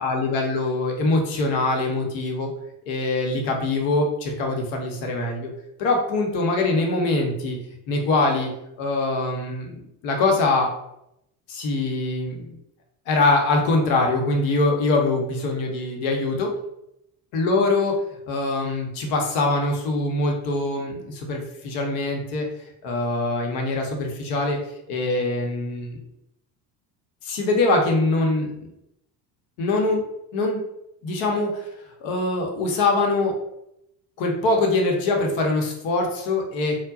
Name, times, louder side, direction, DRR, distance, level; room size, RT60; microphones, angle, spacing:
voice 1, 0.0-2.5 2.9-5.5 5.8-7.6 7.9-8.5 8.8-10.7 11.5-12.5 13.1-16.5 17.3-18.0 18.3-22.5 22.8-24.6 24.9-26.0 27.2-28.7 29.6-30.0 30.3-30.6 31.0-31.7 32.0-33.3 34.2-36.8, left 2 dB, 65° left, 2 dB, 1.0 m, -23 dB
4.3 x 2.2 x 2.5 m, 0.81 s
hypercardioid pair, 65°, 49 cm